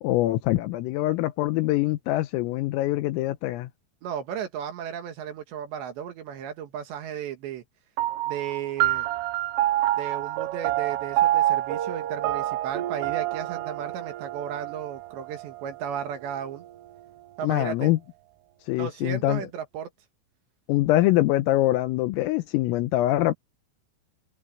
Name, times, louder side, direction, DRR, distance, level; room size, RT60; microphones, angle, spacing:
voice 1, 0.0-3.7 17.4-18.0 18.7-19.4 20.7-23.3, left 16 dB, 85° left, 3.7 m, -24 dB
voice 2, 4.0-7.6 8.3-9.1 10.0-16.6 17.4-17.9 18.8-19.9, right 9 dB, 65° right, 3.6 m, -34 dB
sound 1, 8.0-16.8, right 14 dB, 80° right, 3.6 m, -28 dB
omnidirectional pair, 5.9 m